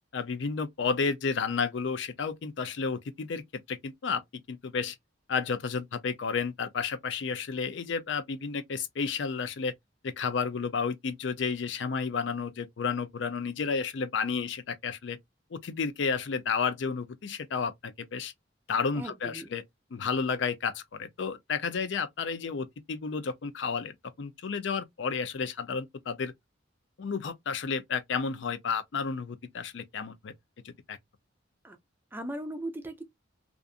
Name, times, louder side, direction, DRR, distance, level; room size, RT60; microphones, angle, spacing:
voice 1, 0.1-3.4 3.7-4.2 4.5-5.0 5.3-9.7 10.0-15.2 15.5-18.3 18.7-19.6 19.9-23.9 24.2-26.3 27.0-30.3 30.6-31.0, left 5 dB, 65° left, 0.4 m, -31 dB
voice 2, 18.9-19.5 31.6-31.8 32.1-33.0, right 1 dB, 10° right, 0.4 m, -38 dB
2.5 x 2.4 x 2.3 m
head